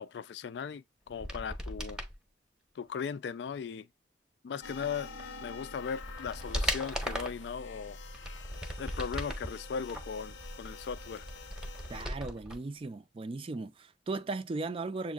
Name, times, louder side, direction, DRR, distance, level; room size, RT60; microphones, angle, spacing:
voice 1, 0.0-2.0 2.8-3.9 4.4-5.1 5.4-8.0 8.8-11.3, left 6 dB, 65° left, 0.3 m, -38 dB
sound 1, 1.1-2.1 5.2-5.3 5.8-7.5 8.0-9.5 9.9-12.6 12.8-12.9, equal, 5° right, 0.7 m, -38 dB
sound 2, 4.6-12.0, left 2 dB, 85° left, 0.7 m, -46 dB
voice 2, 11.9-15.1, right 3 dB, 30° right, 0.3 m, -37 dB
7.1 x 2.5 x 2.4 m
head